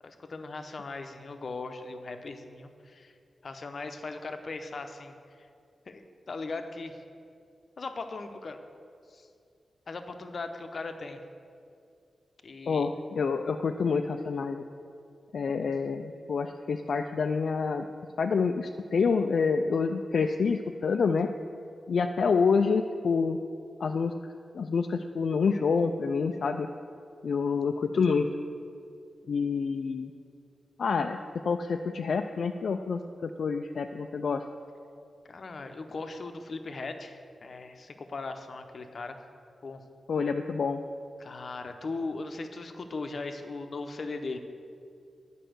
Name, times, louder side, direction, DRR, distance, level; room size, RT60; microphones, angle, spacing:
voice 1, 0.0-3.1 3.4-5.1 5.9-7.0 7.8-8.6 9.1-9.3 9.9-11.2 12.4-12.9 35.3-39.2 39.6-39.8 41.2-44.4, left 3 dB, 50° left, 7 dB, 0.8 m, -38 dB
voice 2, 12.7-14.6 15.3-17.9 18.2-21.3 21.9-23.4 23.8-26.7 27.2-28.3 29.3-30.1 30.8-31.2 31.4-34.4 40.1-40.8, left 5 dB, 65° left, 5 dB, 0.4 m, -27 dB
10.0 x 5.5 x 7.8 m, 2.4 s
wide cardioid pair, 110°, 0 cm